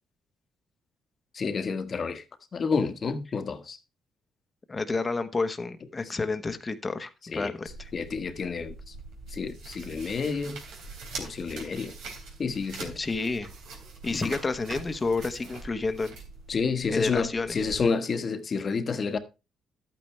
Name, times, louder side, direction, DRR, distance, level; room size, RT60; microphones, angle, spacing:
voice 1, 1.3-2.2 2.5-3.8 7.3-7.5 7.9-8.9 9.3-10.6 11.2-11.9 12.4-13.0 14.1-14.3 16.5-19.2, left 5 dB, 45° left, 1.4 m, -29 dB
voice 2, 4.7-7.9 13.0-13.5 14.0-16.1 16.9-17.6, left 3 dB, 25° left, 1.1 m, -30 dB
sound 1, 7.7-17.8, right 3 dB, 90° right, 3.4 m, -43 dB
11.5 x 9.0 x 3.3 m
cardioid pair, 90°, 0 cm